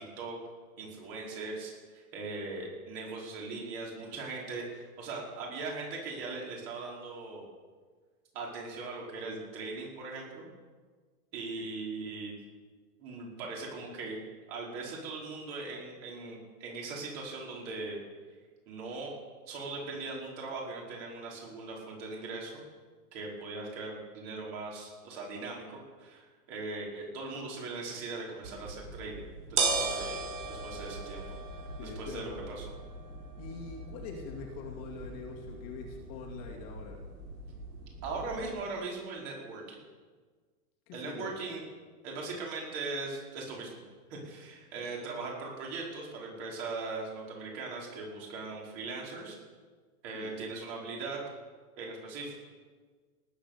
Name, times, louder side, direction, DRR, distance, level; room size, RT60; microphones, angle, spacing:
voice 1, 0.8-1.7 2.1-7.5 8.3-10.5 11.3-12.3 13.0-14.2 14.5-18.0 18.7-19.1 19.5-22.6 23.1-30.2 30.5-31.2 31.8-32.7 38.0-39.8 40.9-41.6 42.0-43.8 44.1-49.4 50.0-51.2 51.8-52.4, right 3 dB, 40° right, -2 dB, 5.0 m, -39 dB
sound 1, 28.4-38.5, right 4 dB, 70° right, 4.2 m, -38 dB
voice 2, 31.8-32.6 33.4-37.0 40.9-41.4 50.1-50.4, left 4 dB, 35° left, -1 dB, 2.3 m, -44 dB
19.0 x 9.1 x 6.8 m, 1.5 s
supercardioid pair, 160°, 46 cm